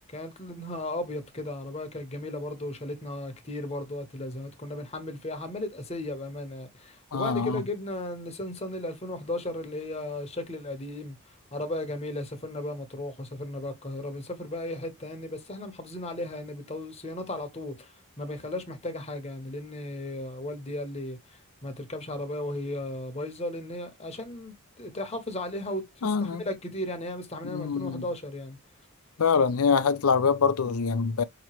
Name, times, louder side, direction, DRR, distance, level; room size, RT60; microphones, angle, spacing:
voice 1, 0.1-11.1 11.5-17.9 18.2-21.2 21.6-25.9 26.2-28.6, left 1 dB, 30° left, 1.0 m, -35 dB
voice 2, 7.1-7.6 26.0-26.4 27.4-28.1 29.2-31.2, left 5 dB, 75° left, 0.5 m, -24 dB
5.3 x 2.9 x 3.0 m
head